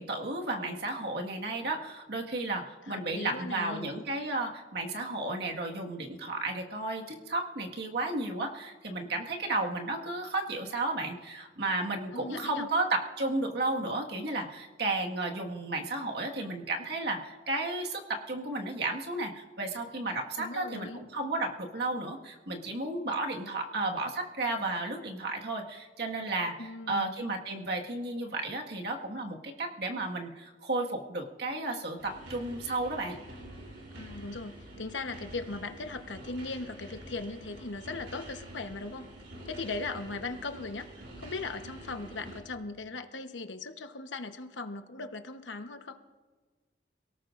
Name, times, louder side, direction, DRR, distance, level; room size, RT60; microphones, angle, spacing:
voice 1, 0.0-33.2, right 2 dB, 60° right, 1 dB, 1.7 m, -33 dB
voice 2, 2.9-3.9 12.1-12.7 20.4-21.0 26.6-27.2 33.9-39.1 39.4-40.9 41.2-46.0, left 3 dB, 85° left, 7 dB, 1.1 m, -38 dB
sound 1, 32.0-42.4, right 1 dB, 80° right, 3.5 m, -47 dB
27.0 x 18.0 x 2.6 m, 1.3 s
head